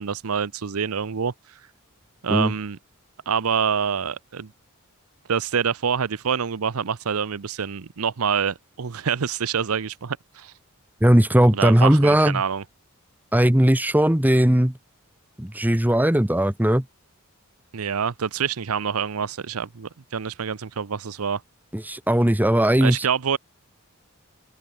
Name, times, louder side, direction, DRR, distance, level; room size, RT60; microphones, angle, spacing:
voice 1, 0.0-1.3 2.2-2.8 3.3-4.5 5.3-10.5 11.5-12.6 17.7-21.4 22.8-23.4, right 7 dB, 85° right, 0.7 m, -26 dB
voice 2, 11.0-12.4 13.3-14.7 15.4-16.8 21.7-23.1, right 1 dB, 10° right, 1.0 m, -18 dB
open air
head